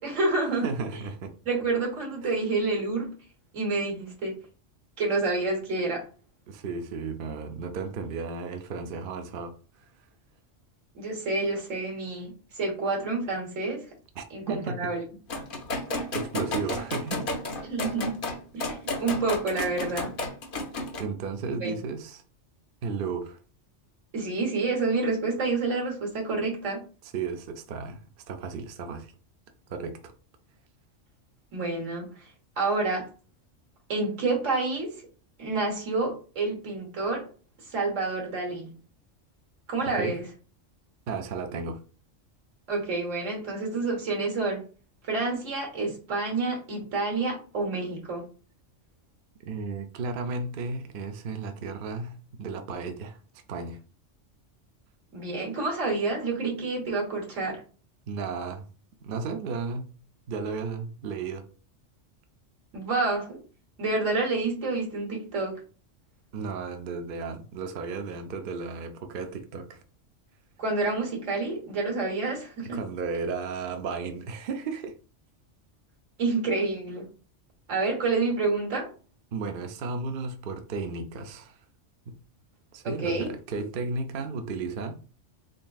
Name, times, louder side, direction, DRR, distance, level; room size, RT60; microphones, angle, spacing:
voice 1, 0.0-0.7 1.4-3.1 3.5-4.3 5.0-6.1 10.9-13.8 14.3-15.0 17.7-18.2 18.5-20.1 21.5-21.7 24.1-26.8 31.5-32.3 32.6-33.1 33.9-35.0 35.4-37.3 37.6-38.7 39.7-40.2 42.7-44.6 45.0-48.2 55.1-57.6 62.7-63.4 63.8-65.6 70.6-72.8 76.2-77.1 77.7-78.9 82.8-83.3, right 3 dB, 80° right, 1.7 m, -28 dB
voice 2, 0.5-1.3 6.5-9.9 14.2-14.9 15.9-17.4 21.0-22.2 22.8-23.4 27.1-28.0 28.3-29.1 29.7-30.1 40.0-40.2 41.1-41.8 49.5-53.2 53.5-53.8 58.1-58.7 59.0-59.9 60.3-61.5 66.3-69.8 72.7-74.9 79.3-81.6 82.1-82.2 82.7-85.0, right 4 dB, 60° right, 0.6 m, -34 dB
sound 1, 15.3-21.0, left 2 dB, 50° left, 0.8 m, -32 dB
3.8 x 3.5 x 2.3 m
omnidirectional pair, 1.3 m